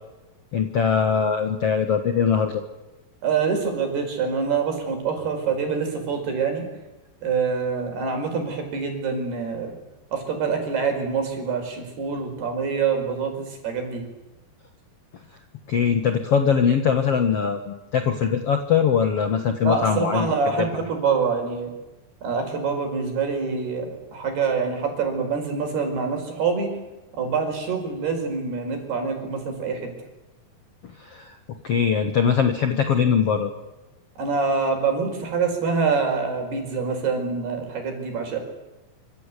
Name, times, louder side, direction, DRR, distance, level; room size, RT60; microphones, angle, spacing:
voice 1, 0.5-2.6 15.7-20.3 20.6-20.7 31.0-31.3 31.6-33.5, left 7 dB, 60° left, 7 dB, 1.6 m, -21 dB
voice 2, 3.2-6.7 7.2-9.8 10.1-14.0 19.6-21.7 22.2-26.7 27.1-29.9 34.2-38.4, right 5 dB, 70° right, 4 dB, 6.9 m, -25 dB
26.0 x 25.5 x 8.4 m, 1.1 s
omnidirectional pair, 4.8 m